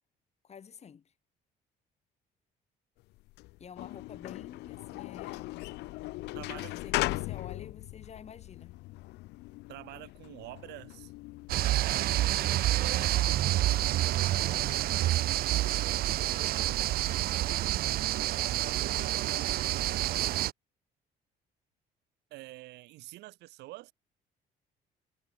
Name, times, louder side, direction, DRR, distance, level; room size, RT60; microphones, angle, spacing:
voice 1, 0.4-1.1 3.6-5.6 6.3-8.8 13.0-13.5 14.2-15.1 16.4-16.9, left 7 dB, 40° left, 6.4 m, -50 dB
sound 1, 3.1-13.9, left 20 dB, 90° left, 1.8 m, -39 dB
voice 2, 6.3-6.7 9.7-11.1 13.6-14.5 22.3-23.9, right 19 dB, 85° right, 2.0 m, -47 dB
sound 2, 11.5-20.5, right 15 dB, 65° right, 0.6 m, -28 dB
cardioid pair, 110°, 17 cm